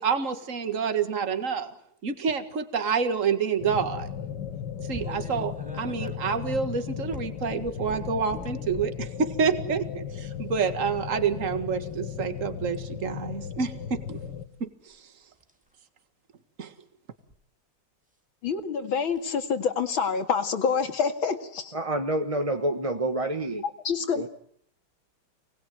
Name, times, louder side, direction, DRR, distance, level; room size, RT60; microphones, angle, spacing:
voice 1, 0.0-1.7 2.0-4.1 4.8-14.2 14.6-15.0 16.6-16.7, right 6 dB, 40° right, 9 dB, 2.1 m, -28 dB
sound 1, 3.6-14.5, left 8 dB, 65° left, 2.2 m, -36 dB
sound 2, 4.9-9.1 9.8-10.0 11.8-12.2 13.9-14.1 14.6-15.0 15.4-15.7 17.1-17.4 19.1-19.3 20.8-20.9 22.4-22.5 23.2-23.3, right 2 dB, 5° right, 2.1 m, -45 dB
voice 2, 18.4-21.7 23.8-24.3, left 6 dB, 85° left, 7 dB, 2.9 m, -27 dB
voice 3, 21.7-23.6 24.1-24.3, right 1 dB, 20° right, 5 dB, 1.2 m, -28 dB
28.5 x 20.5 x 9.3 m, 0.68 s
omnidirectional pair, 2.2 m